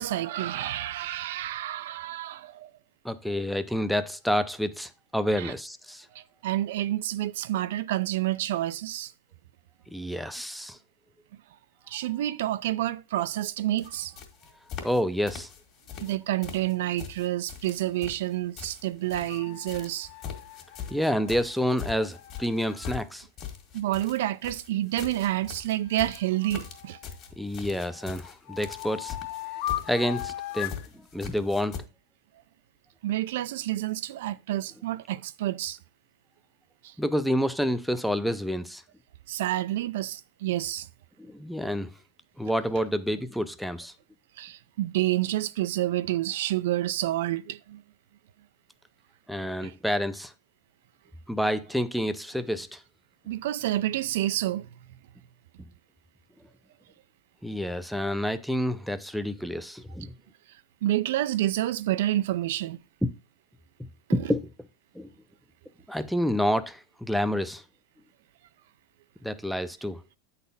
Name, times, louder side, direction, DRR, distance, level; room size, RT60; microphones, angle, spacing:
voice 1, 0.0-2.7 5.4-5.5 6.1-9.1 11.9-14.1 16.0-20.1 23.7-27.0 33.0-35.8 36.8-36.9 39.3-40.9 44.4-47.8 49.6-49.7 53.3-54.7 60.8-62.8, right 14 dB, 75° right, 0.5 m, -29 dB
voice 2, 3.0-6.1 9.9-10.8 14.8-15.5 20.9-23.3 27.4-29.2 29.9-30.8 31.1-31.8 37.0-38.8 41.2-41.9 42.4-43.9 49.3-50.3 51.3-52.8 57.4-60.1 63.0-63.1 64.1-64.5 64.9-65.1 65.9-67.6 69.2-70.0, equal, ahead, 0.6 m, -28 dB
sound 1, 13.8-13.9 14.2-15.0 15.3-16.2 16.4-19.4 19.7-31.8, left 7 dB, 40° left, 1.8 m, -41 dB
sound 2, 19.1-23.0 25.9-27.2 27.7-30.9, left 13 dB, 60° left, 0.6 m, -39 dB
8.4 x 4.1 x 5.4 m
supercardioid pair, 130°, 0 cm